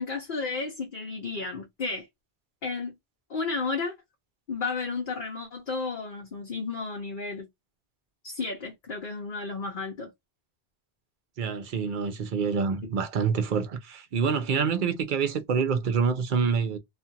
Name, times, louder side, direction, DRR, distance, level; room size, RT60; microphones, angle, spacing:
voice 1, 0.0-2.1 2.6-2.9 3.3-3.9 4.5-7.4 8.2-10.1, left 4 dB, 55° left, 0.8 m, -32 dB
voice 2, 11.4-16.8, right 6 dB, 55° right, 0.7 m, -26 dB
2.5 x 2.4 x 2.6 m
omnidirectional pair, 1.1 m